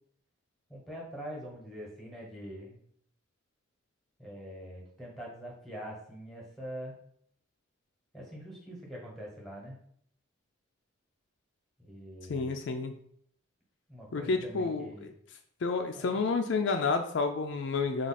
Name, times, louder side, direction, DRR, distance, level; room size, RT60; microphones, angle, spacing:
voice 1, 0.7-2.8 4.2-6.9 8.1-9.8 11.8-12.5 13.9-15.1 15.9-16.1, equal, ahead, -2 dB, 1.0 m, -44 dB
voice 2, 12.3-12.9 14.1-15.1 15.6-18.1, left 4 dB, 60° left, 6 dB, 0.3 m, -30 dB
4.6 x 2.4 x 4.1 m, 0.66 s
head